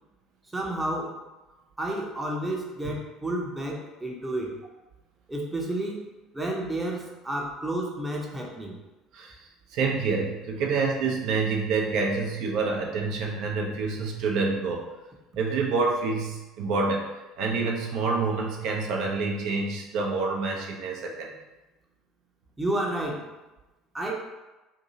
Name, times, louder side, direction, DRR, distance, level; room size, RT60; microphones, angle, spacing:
voice 1, 0.5-1.1 1.8-4.6 5.3-6.1 6.3-8.8 22.6-23.2 23.9-24.1, right 1 dB, 15° right, -1 dB, 0.7 m, -31 dB
voice 2, 9.7-14.8 15.4-17.1 17.4-21.3, right 4 dB, 55° right, 0 dB, 0.5 m, -27 dB
2.7 x 2.7 x 2.7 m, 1.1 s
figure-of-eight pair, 60°, 0 cm